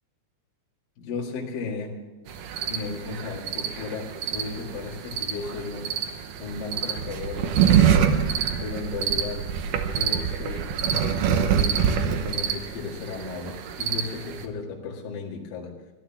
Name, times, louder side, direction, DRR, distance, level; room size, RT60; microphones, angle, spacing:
voice 1, 1.0-1.9 2.6-5.9 6.4-8.1 8.6-9.4 9.8-15.7, left 4 dB, 60° left, -2 dB, 3.3 m, -35 dB
sound 1, 2.3-14.5, right 8 dB, 70° right, 2.2 m, -26 dB
14.5 x 12.0 x 7.1 m, 1.2 s
omnidirectional pair, 4.8 m